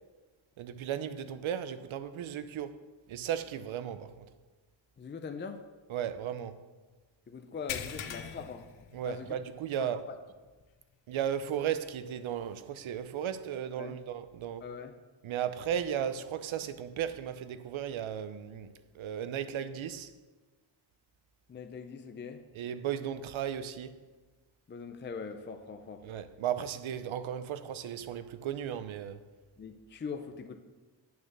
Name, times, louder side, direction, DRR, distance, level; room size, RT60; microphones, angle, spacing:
voice 1, 0.6-2.8 3.1-4.3 5.9-6.6 8.9-10.1 11.1-14.6 15.2-18.7 18.9-20.1 22.5-24.0 26.0-29.2, right 9 dB, 80° right, 0.7 m, -35 dB
voice 2, 5.0-5.6 7.3-8.7 9.0-9.4 9.8-10.1 13.8-14.0 14.6-14.9 21.5-22.4 24.7-26.0 29.6-30.6, left 5 dB, 25° left, 0.5 m, -42 dB
sound 1, 7.7-9.6 9.9-10.1 10.6-10.7 12.4-12.5, left 9 dB, 70° left, 0.8 m, -41 dB
8.8 x 6.9 x 6.5 m
wide cardioid pair, 175°, 47 cm